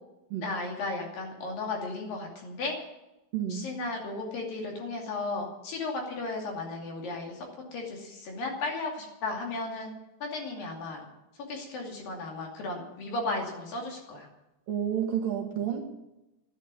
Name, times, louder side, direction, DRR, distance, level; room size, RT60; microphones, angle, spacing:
voice 1, 0.4-2.8 3.5-7.5 7.7-9.9 10.2-11.1 11.4-14.3, left 3 dB, 55° left, 1 dB, 4.1 m, -35 dB
voice 2, 3.3-3.7 14.7-15.8, right 9 dB, 60° right, 3 dB, 2.8 m, -30 dB
11.5 x 11.0 x 9.6 m, 0.96 s
omnidirectional pair, 5.0 m